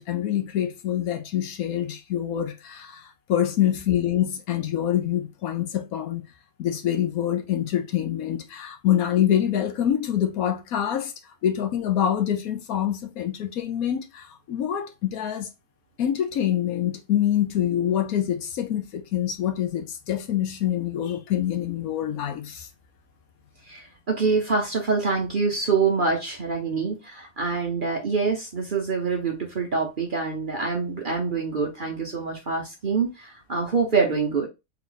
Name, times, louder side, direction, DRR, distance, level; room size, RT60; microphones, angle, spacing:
voice 1, 0.0-6.2 6.6-11.1 11.4-15.5 16.0-22.7, left 10 dB, 70° left, 1.1 m, -25 dB
voice 2, 23.6-34.5, right 4 dB, 45° right, 0.7 m, -25 dB
3.4 x 3.0 x 3.8 m
omnidirectional pair, 1.6 m